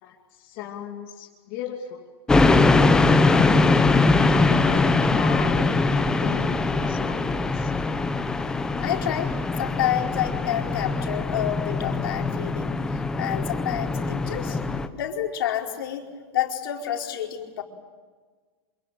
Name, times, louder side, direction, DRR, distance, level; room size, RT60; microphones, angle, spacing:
voice 1, 0.0-2.1 3.0-7.7, left 8 dB, 35° left, -1 dB, 2.6 m, -37 dB
sound 1, 2.3-14.9, left 3 dB, 5° left, 0.8 m, -22 dB
voice 2, 8.8-9.3 9.6-14.6 14.9-16.0 16.3-17.6, left 11 dB, 60° left, 1 dB, 4.6 m, -29 dB
27.5 x 27.0 x 7.8 m, 1.4 s
supercardioid pair, 180°, 13 cm